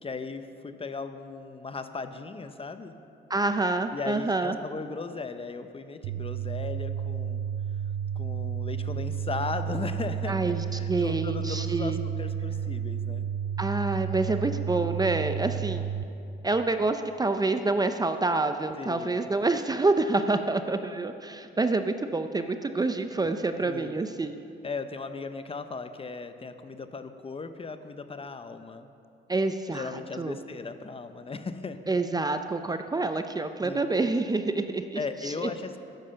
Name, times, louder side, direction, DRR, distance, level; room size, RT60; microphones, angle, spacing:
voice 1, 0.0-2.9 3.9-7.5 8.2-13.3 15.3-15.8 18.8-19.2 23.7-24.0 24.6-28.9 29.7-31.8 33.6-33.9 35.0-35.8, left 4 dB, 30° left, 9 dB, 0.8 m, -37 dB
voice 2, 3.3-4.6 10.3-12.0 13.6-15.9 16.4-24.3 29.3-30.4 31.9-35.0 35.4-35.5, right 3 dB, 20° right, 8 dB, 0.6 m, -27 dB
sound 1, 6.0-16.0, right 8 dB, 85° right, 0.6 m, -32 dB
13.0 x 10.5 x 5.7 m, 2.6 s
cardioid pair, 90°, 20 cm